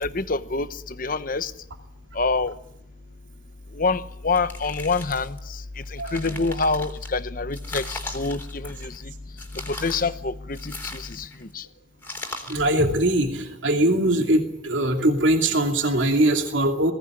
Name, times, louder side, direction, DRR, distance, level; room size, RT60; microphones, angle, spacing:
voice 1, 0.0-0.7 1.0-1.5 2.2-2.5 3.8-5.4 6.1-8.9 9.7-11.3 11.5-11.6, left 3 dB, 45° left, 12 dB, 0.9 m, -26 dB
sound 1, 4.3-5.4 5.8-7.1 7.5-9.0 9.4-10.1 10.5-11.4 12.0-12.7, left 2 dB, 10° left, 3.3 m, -38 dB
voice 2, 12.5-16.9, right 1 dB, 70° right, 4 dB, 2.6 m, -21 dB
21.0 x 16.5 x 9.7 m, 0.84 s
head